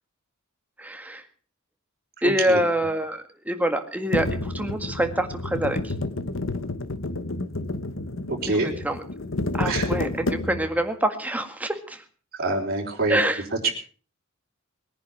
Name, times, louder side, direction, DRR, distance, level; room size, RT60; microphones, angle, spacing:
voice 1, 0.8-1.2 2.2-5.9 8.5-9.0 9.5-12.0 13.1-13.4, right 1 dB, 5° right, 6 dB, 1.8 m, -26 dB
sound 1, 4.1-10.8, left 2 dB, 65° left, 1.2 m, -30 dB
voice 2, 8.3-8.7 9.6-9.9 12.3-13.2 13.6-13.7, right 3 dB, 45° right, -2 dB, 4.6 m, -25 dB
21.5 x 10.5 x 5.9 m, 0.41 s
head